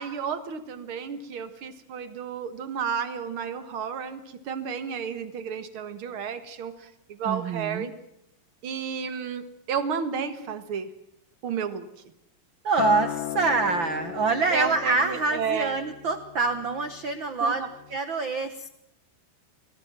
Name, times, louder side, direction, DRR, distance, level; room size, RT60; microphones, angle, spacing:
voice 1, 0.0-7.9 8.6-10.9 11.4-11.9 14.5-15.8 17.4-17.7, right 6 dB, 50° right, 11 dB, 1.8 m, -32 dB
voice 2, 7.2-7.9 12.6-17.6 17.9-18.7, right 4 dB, 85° right, 10 dB, 1.0 m, -26 dB
Acoustic guitar, 12.8-17.2 17.6-18.0, left 13 dB, 80° left, 3.0 m, -35 dB
26.5 x 19.5 x 7.5 m, 0.78 s
omnidirectional pair, 4.2 m